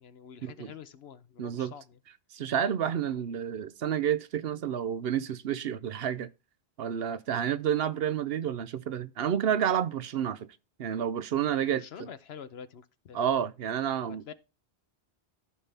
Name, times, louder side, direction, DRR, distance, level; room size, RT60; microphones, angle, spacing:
voice 1, 0.0-2.0 4.6-4.7 11.7-13.4 14.1-14.3, left 7 dB, 70° left, 1.0 m, -47 dB
voice 2, 1.4-1.7 2.3-6.3 6.8-10.5 10.8-11.8 13.1-14.3, right 9 dB, 65° right, 0.8 m, -30 dB
14.0 x 5.6 x 3.4 m
omnidirectional pair, 1.1 m